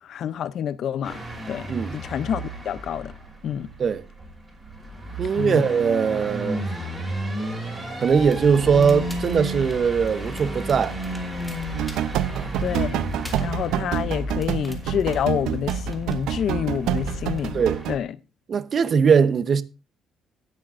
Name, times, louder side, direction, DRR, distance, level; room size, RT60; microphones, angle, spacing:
voice 1, 0.0-1.7 1.9-3.1 3.4-3.7 5.4-5.6 12.6-13.0 13.4-17.6 17.9-18.1, left 9 dB, 50° left, 0.4 m, -28 dB
sound 1, 1.0-18.0, right 1 dB, 10° right, 4.5 m, -34 dB
voice 2, 5.2-6.6 8.0-11.0 12.3-12.5 17.5-17.8 18.5-19.6, right 6 dB, 35° right, 0.8 m, -20 dB
Crackle, 8.1-17.5, left 1 dB, 10° left, 2.0 m, -36 dB
sound 2, 11.7-18.0, right 12 dB, 80° right, 0.6 m, -28 dB
17.0 x 8.5 x 2.5 m
cardioid pair, 150°, 0 cm